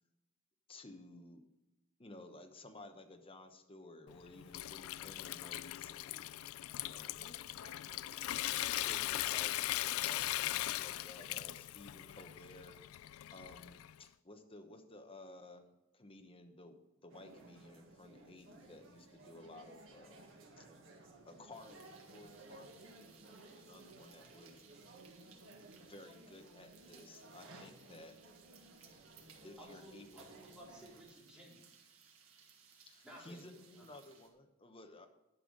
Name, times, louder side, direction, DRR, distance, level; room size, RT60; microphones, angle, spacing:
voice 1, 0.7-1.4 2.0-6.3 6.7-7.2 8.7-12.7 13.3-15.7 15.9-20.7 21.3-24.8 25.8-28.1 29.4-30.2 32.8-35.1, left 2 dB, 25° left, 5 dB, 1.0 m, -55 dB
Water tap faucet / Sink (filling or washing) / Trickle dribble, 4.1-14.0, left 15 dB, 80° left, 0.3 m, -39 dB
voice 2, 7.2-8.5 9.4-9.8 12.1-12.3, left 1 dB, 55° left, 2 dB, 1.9 m, -61 dB
sound 1, 17.1-31.0, right 2 dB, 65° right, 1.8 m, -58 dB
sound 2, 21.5-34.3, right 6 dB, 85° right, 1.9 m, -64 dB
voice 3, 29.6-31.6 33.0-33.9, equal, 5° right, -5 dB, 4.1 m, -56 dB
11.0 x 5.7 x 6.5 m, 0.96 s
head